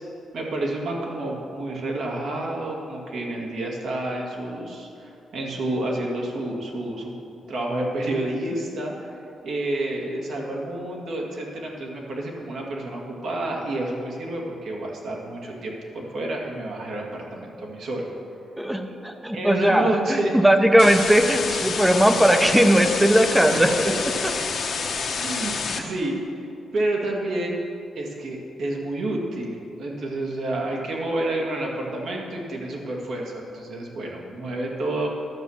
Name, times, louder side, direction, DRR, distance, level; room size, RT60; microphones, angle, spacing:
voice 1, 0.3-7.1 7.5-9.1 9.4-18.1 19.3-20.4 23.5-23.7 25.2-26.5 26.7-27.6 28.0-35.1, right 1 dB, 70° right, -1 dB, 2.0 m, -29 dB
voice 2, 18.6-23.9 24.2-24.3, equal, 5° right, 6 dB, 0.8 m, -19 dB
sound 1, 20.8-25.8, left 5 dB, 50° left, 1.1 m, -28 dB
12.0 x 6.3 x 7.2 m, 2.7 s
cardioid pair, 140°, 0 cm